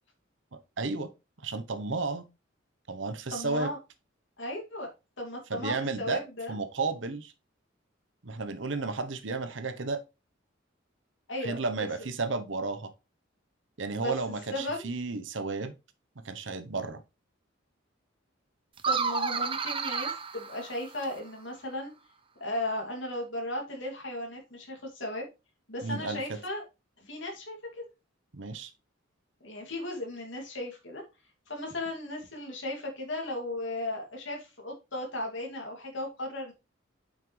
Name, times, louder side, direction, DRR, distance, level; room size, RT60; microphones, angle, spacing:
voice 1, 0.8-1.1 1.4-2.2 2.9-3.7 5.5-6.2 6.5-7.3 8.2-10.0 11.4-12.9 13.8-15.7 16.2-17.0 25.8-26.4 28.3-28.7, right 3 dB, 70° right, 0.9 m, -33 dB
voice 2, 3.3-3.8 4.4-4.9 5.2-6.5 11.3-11.6 14.0-14.1 14.5-14.9 18.8-21.9 22.4-25.3 25.7-26.6 27.0-27.8 29.4-31.0 31.5-36.5, left 1 dB, 70° left, 2.6 m, -36 dB
sound 1, 18.8-21.3, right 5 dB, 25° right, 0.6 m, -31 dB
7.8 x 5.8 x 3.2 m
head